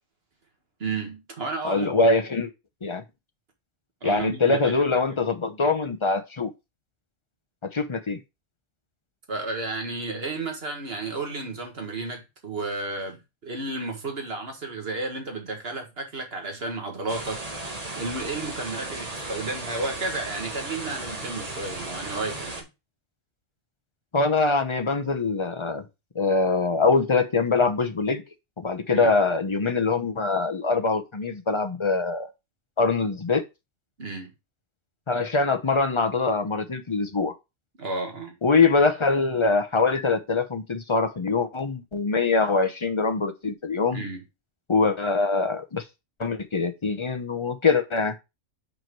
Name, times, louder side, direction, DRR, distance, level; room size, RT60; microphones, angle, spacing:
voice 1, 0.8-2.0 4.0-4.8 5.1-5.3 9.3-22.7 28.9-29.1 34.0-34.3 37.8-38.4 43.9-44.2, right 3 dB, 50° right, 1.8 m, -32 dB
voice 2, 1.6-2.5 2.8-3.0 4.0-6.5 7.7-8.2 24.1-25.9 26.1-28.2 28.6-32.3 32.8-33.4 35.1-37.3 38.4-44.0 44.7-45.8 46.2-48.2, left 4 dB, 30° left, 0.6 m, -23 dB
sound 1, 17.1-22.6, right 2 dB, 30° right, 1.4 m, -35 dB
5.4 x 4.5 x 4.5 m
omnidirectional pair, 1.3 m